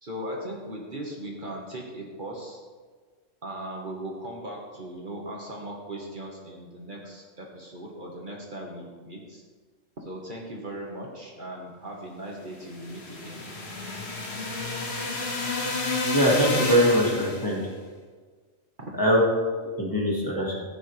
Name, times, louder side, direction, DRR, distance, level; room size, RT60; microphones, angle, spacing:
voice 1, 0.0-2.6 3.4-9.4 10.0-13.5 18.8-18.9, right 1 dB, 40° right, -1 dB, 1.5 m, -38 dB
sound 1, 12.6-17.6, left 2 dB, 55° left, 1.8 m, -30 dB
voice 2, 16.0-17.6 19.0-19.2 19.8-20.6, equal, 15° left, -4 dB, 1.8 m, -22 dB
15.0 x 9.1 x 3.3 m, 1.5 s
omnidirectional pair, 1.3 m